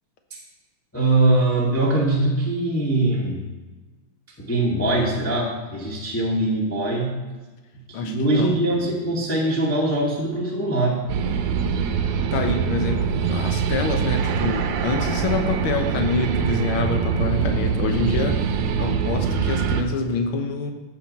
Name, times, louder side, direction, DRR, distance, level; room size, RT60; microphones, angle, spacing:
voice 1, 0.9-3.4 4.4-7.2 7.9-11.0, right 2 dB, 10° left, -4 dB, 0.7 m, -22 dB
voice 2, 7.9-8.6 12.3-18.4 18.7-20.7, left 4 dB, 70° left, 5 dB, 1.2 m, -26 dB
sound 1, 11.1-19.8, right 6 dB, 75° right, 2.1 m, -23 dB
14.0 x 8.7 x 4.2 m, 1.3 s
omnidirectional pair, 3.8 m